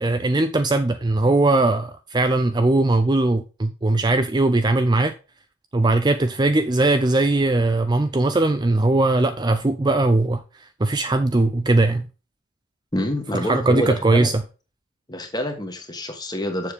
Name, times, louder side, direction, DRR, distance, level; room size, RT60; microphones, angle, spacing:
voice 1, 0.0-5.1 5.7-10.4 10.8-12.0 13.4-14.3, right 2 dB, 20° right, 0.4 m, -19 dB
voice 2, 12.9-14.3 15.1-16.7, left 1 dB, 20° left, 1.5 m, -27 dB
7.0 x 6.7 x 5.0 m
head